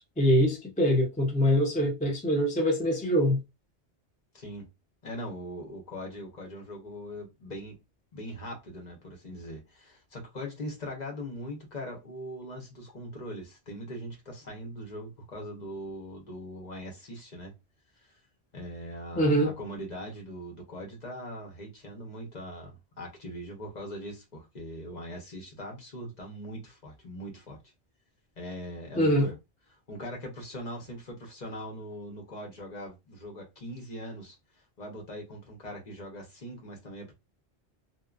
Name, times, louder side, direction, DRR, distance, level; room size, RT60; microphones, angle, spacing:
voice 1, 0.0-3.4 19.2-19.5 29.0-29.3, equal, 10° left, 0.4 m, -24 dB
voice 2, 4.3-4.7 5.0-7.8 8.1-17.6 18.0-18.2 18.5-27.6 28.4-29.3 29.9-34.4 34.8-37.1, equal, 45° left, 0.9 m, -41 dB
2.7 x 2.1 x 2.4 m
omnidirectional pair, 1.1 m